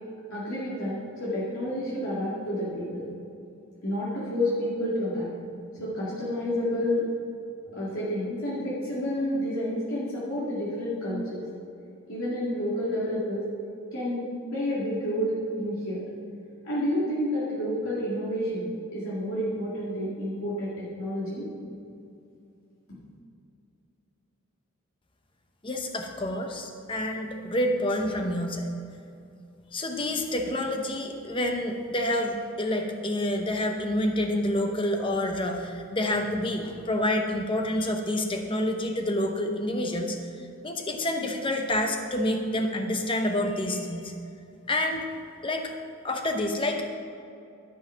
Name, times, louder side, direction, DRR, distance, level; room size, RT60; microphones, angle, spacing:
voice 1, 0.3-3.1 3.8-5.3 5.8-7.0 7.7-11.4 12.1-13.4 13.9-14.2 14.5-16.0 16.6-21.4, left 1 dB, 70° left, -8 dB, 2.1 m, -29 dB
voice 2, 25.6-28.7 29.7-40.2 40.6-44.1 44.7-45.0 45.4-45.6 46.0-46.8, left 1 dB, 25° left, 4 dB, 0.8 m, -28 dB
12.5 x 5.6 x 5.6 m, 2.6 s
head